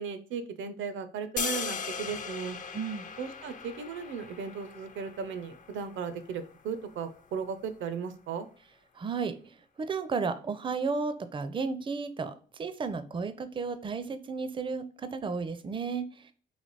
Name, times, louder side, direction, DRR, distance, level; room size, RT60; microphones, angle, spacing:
voice 1, 0.0-2.6 3.2-8.5, right 6 dB, 75° right, 11 dB, 0.6 m, -36 dB
sound 1, 1.4-7.5, left 6 dB, 40° left, 0.5 m, -39 dB
voice 2, 2.7-3.1 8.9-16.3, right 4 dB, 25° right, 11 dB, 0.4 m, -33 dB
3.2 x 3.0 x 4.0 m, 0.42 s
cardioid pair, 90°, 20 cm